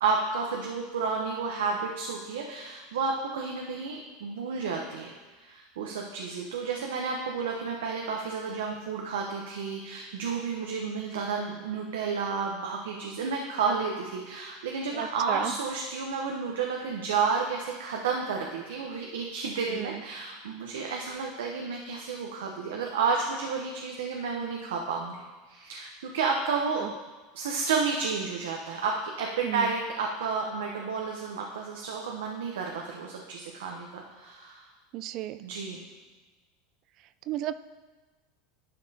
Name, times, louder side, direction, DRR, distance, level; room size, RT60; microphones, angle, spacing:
voice 1, 0.0-25.2 25.5-26.8 27.3-34.7 35.4-35.8, right 5 dB, 90° right, 0 dB, 0.8 m, -31 dB
voice 2, 14.9-15.5 19.7-20.0 26.8-26.9 29.4-29.7 34.9-35.4 37.3-37.6, right 13 dB, 50° right, 14 dB, 0.3 m, -33 dB
11.5 x 5.3 x 2.8 m, 1.3 s
supercardioid pair, 115°, 0 cm